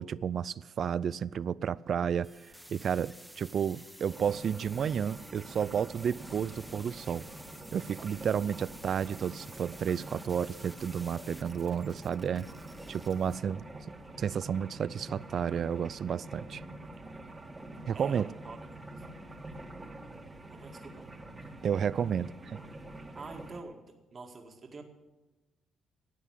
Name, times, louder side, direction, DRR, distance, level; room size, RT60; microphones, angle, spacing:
voice 1, 0.0-2.3 2.7-7.2 7.7-12.5 12.9-13.6 14.2-16.6 17.9-18.3 21.6-22.6, right 8 dB, 55° right, 0.4 m, -31 dB
sound 1, 2.2-13.4, right 1 dB, 5° right, 1.3 m, -52 dB
sound 2, 4.1-23.6, right 2 dB, 25° right, 1.7 m, -46 dB
voice 2, 17.9-19.0 20.5-21.1 21.4-21.5 23.1-24.8, right 3 dB, 40° right, 2.1 m, -47 dB
12.5 x 8.4 x 9.9 m
cardioid pair, 90°, 0 cm